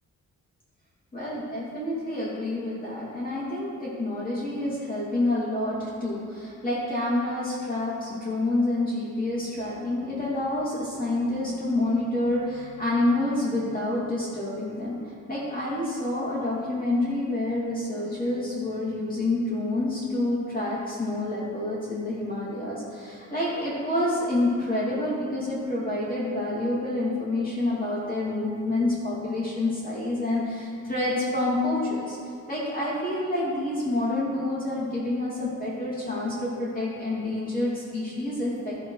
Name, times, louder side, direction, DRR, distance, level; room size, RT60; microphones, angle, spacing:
voice 1, 1.1-15.0 15.3-32.2 32.5-38.9, left 2 dB, 25° left, -8 dB, 2.7 m, -28 dB
14.0 x 10.5 x 3.3 m, 2.5 s
wide cardioid pair, 145°, 32 cm